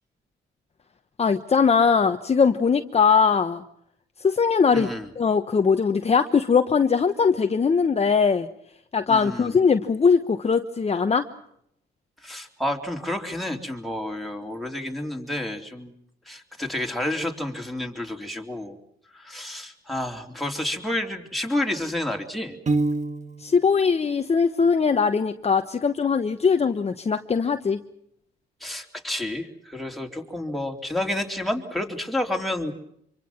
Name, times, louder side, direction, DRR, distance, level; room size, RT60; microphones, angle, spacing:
voice 1, 1.2-3.6 4.2-4.9 5.2-8.5 8.9-11.3 23.4-27.8, left 5 dB, 30° left, 7 dB, 1.1 m, -21 dB
voice 2, 4.7-5.1 9.1-9.5 12.2-15.9 16.3-18.8 19.1-22.6 28.6-32.7, left 1 dB, ahead, 2 dB, 3.7 m, -30 dB
Piano, 22.7-23.6, right 3 dB, 35° right, 1.6 m, -25 dB
26.0 x 24.5 x 6.0 m, 0.72 s
cardioid pair, 90°, 20 cm